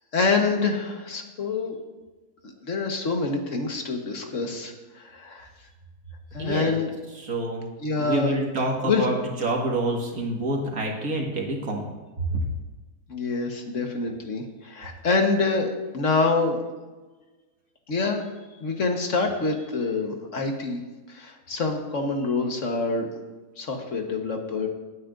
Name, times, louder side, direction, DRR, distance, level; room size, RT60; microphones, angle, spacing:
voice 1, 0.1-1.8 2.6-5.5 6.3-6.9 7.8-8.3 8.8-9.1 13.1-16.6 17.9-18.2 18.6-20.8 21.1-23.1 23.6-24.7, left 3 dB, 55° left, 3 dB, 1.5 m, -26 dB
voice 2, 6.4-6.8 7.2-7.7 8.0-9.1 9.4-11.9 12.3-12.4, right 2 dB, 70° right, 0 dB, 2.2 m, -27 dB
19.0 x 9.2 x 2.6 m, 1.2 s
omnidirectional pair, 1.6 m